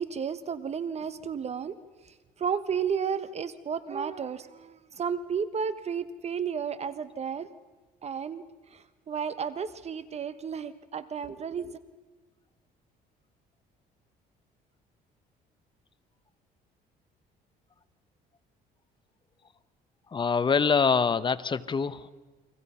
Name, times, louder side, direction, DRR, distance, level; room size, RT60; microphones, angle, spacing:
voice 1, 0.0-1.8 2.0-7.5 8.0-8.4 8.7-11.8, right 7 dB, 40° right, 14 dB, 1.0 m, -33 dB
voice 2, 20.1-22.1, left 5 dB, 30° left, 14 dB, 1.0 m, -25 dB
30.0 x 23.5 x 5.7 m, 1.3 s
cardioid pair, 110°, 17 cm